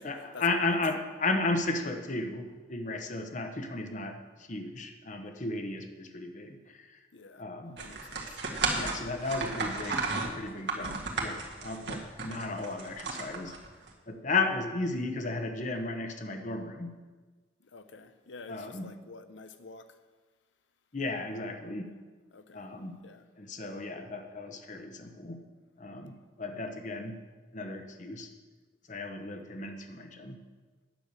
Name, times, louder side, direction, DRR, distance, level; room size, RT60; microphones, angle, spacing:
voice 1, 0.0-7.0 7.3-7.8 8.7-13.6 14.1-17.0 18.5-18.9 20.9-21.9 22.5-23.0 23.4-25.4 25.8-27.2 27.5-28.3 28.9-30.4, left 3 dB, 40° left, 6 dB, 1.0 m, -34 dB
voice 2, 7.1-7.4 7.8-8.4 17.6-20.0 22.3-22.7 23.0-23.3, left 3 dB, 85° left, 10 dB, 0.8 m, -49 dB
sound 1, 7.8-13.9, right 3 dB, 65° right, 1.7 m, -34 dB
9.3 x 6.7 x 8.3 m, 1.3 s
head